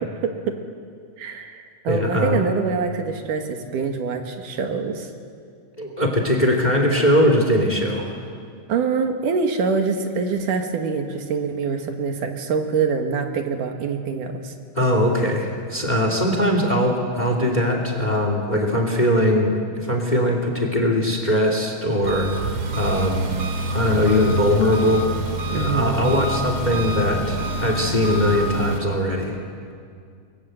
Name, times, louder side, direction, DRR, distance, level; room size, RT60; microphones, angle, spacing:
voice 1, 0.2-0.6 1.2-5.1 8.7-14.5 25.5-26.1, right 5 dB, 80° right, 5 dB, 3.3 m, -25 dB
voice 2, 1.9-2.5 5.8-8.1 14.7-19.5 19.8-23.3 23.7-25.1 25.5-29.4, left 1 dB, 15° left, 3 dB, 2.5 m, -21 dB
Engine, 22.0-28.8, right 1 dB, 60° right, 3.4 m, -27 dB
28.0 x 22.0 x 8.0 m, 2.2 s
omnidirectional pair, 3.7 m